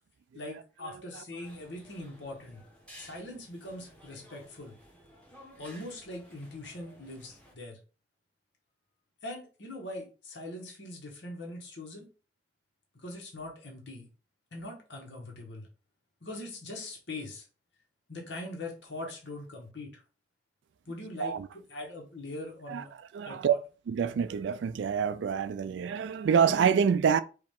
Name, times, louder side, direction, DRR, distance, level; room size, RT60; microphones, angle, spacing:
voice 1, 0.3-2.6 3.0-4.8 5.6-7.8 9.2-12.1 13.0-14.1 14.5-15.7 16.2-17.4 18.1-20.0 20.9-21.3 21.7-22.9 23.2-23.6, left 2 dB, 80° left, 1.5 m, -42 dB
sound 1, 1.4-7.5, equal, 5° left, 1.2 m, -55 dB
voice 2, 23.1-23.5 23.9-27.2, right 7 dB, 80° right, 0.3 m, -26 dB
4.8 x 2.9 x 3.7 m
head